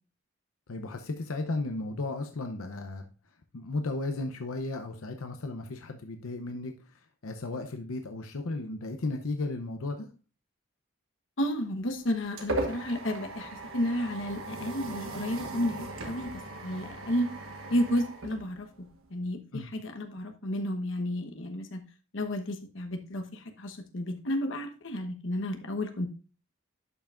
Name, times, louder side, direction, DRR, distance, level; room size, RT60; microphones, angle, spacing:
voice 1, 0.7-3.1 3.5-10.1 19.5-19.7, left 2 dB, 90° left, 6 dB, 0.7 m, -35 dB
voice 2, 11.4-16.3 16.6-17.3 17.7-18.7 19.1-21.8 22.1-26.1, equal, 65° left, 5 dB, 1.1 m, -32 dB
sound 1, 11.6-19.1, right 2 dB, 80° right, 1.3 m, -38 dB
11.0 x 5.9 x 2.5 m, 0.33 s
head